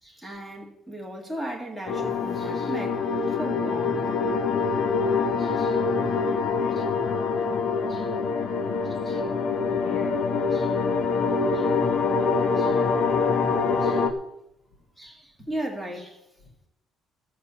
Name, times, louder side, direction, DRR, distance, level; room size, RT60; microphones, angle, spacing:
voice 1, 0.0-4.1 5.4-5.8 6.8-6.9 7.9-8.1 9.1-9.2 10.5-10.8 11.5-11.7 12.6-12.8 13.8-14.1 15.0-16.2, right 1 dB, ahead, 2.2 m, -37 dB
sound 1, 1.9-14.1, left 4 dB, 40° left, 1.2 m, -25 dB
voice 2, 5.7-7.7 8.2-10.2, left 5 dB, 60° left, 4.7 m, -46 dB
13.5 x 6.6 x 7.1 m
cardioid pair, 180°, 0 cm